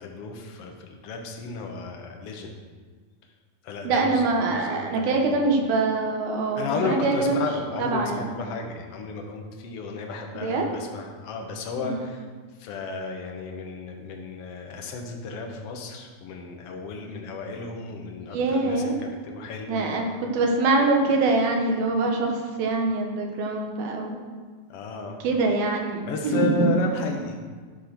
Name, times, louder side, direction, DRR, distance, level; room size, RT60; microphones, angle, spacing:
voice 1, 0.0-2.6 3.6-5.4 6.6-12.2 12.6-19.8 24.7-25.2 26.0-27.4, left 4 dB, 65° left, 2 dB, 1.5 m, -33 dB
voice 2, 3.8-7.4 7.8-8.3 10.4-10.7 11.8-12.0 18.3-19.0 19.7-20.0 20.3-24.2 25.2-26.7, right 3 dB, 85° right, 2 dB, 3.1 m, -24 dB
13.0 x 5.0 x 5.9 m, 1.5 s
omnidirectional pair, 4.2 m